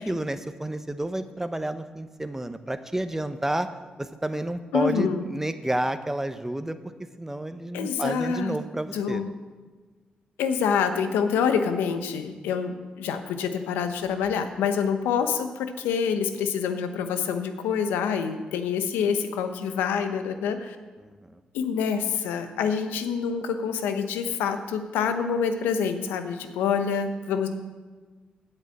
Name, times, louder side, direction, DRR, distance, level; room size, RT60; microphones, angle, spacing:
voice 1, 0.0-3.7 4.0-6.8 7.2-9.3, right 1 dB, 10° right, 10 dB, 0.9 m, -30 dB
voice 2, 4.7-5.2 7.7-8.6 8.9-9.3 10.4-20.8 21.5-27.5, left 6 dB, 90° left, 8 dB, 0.8 m, -26 dB
8.4 x 6.7 x 8.4 m, 1.4 s
supercardioid pair, 45°, 3 cm